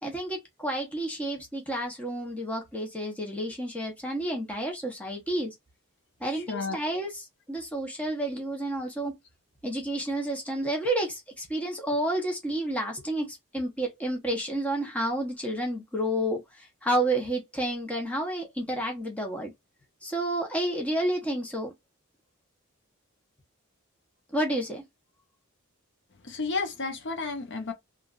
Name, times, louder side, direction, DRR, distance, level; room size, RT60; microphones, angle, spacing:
voice 1, 0.0-5.5 6.2-9.1 9.6-13.3 13.5-16.4 16.8-19.5 20.0-21.7 24.3-24.8, right 1 dB, 5° left, 0.9 m, -30 dB
voice 2, 26.2-27.7, left 4 dB, 55° left, 0.7 m, -31 dB
3.0 x 2.4 x 2.4 m
head